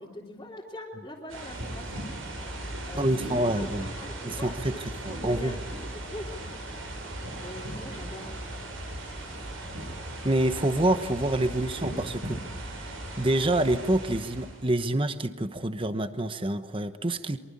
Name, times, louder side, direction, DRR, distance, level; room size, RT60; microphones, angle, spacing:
voice 1, 0.0-2.1 2.8-4.5 5.1-6.3 7.4-8.6, left 1 dB, 15° left, -5 dB, 3.4 m, -43 dB
sound 1, 1.3-14.7, right 1 dB, 75° right, 7.8 m, -37 dB
voice 2, 2.9-3.9 4.2-5.5 10.2-12.9 13.2-17.4, right 1 dB, 25° right, 10 dB, 1.0 m, -27 dB
24.0 x 24.0 x 8.6 m, 1.2 s
head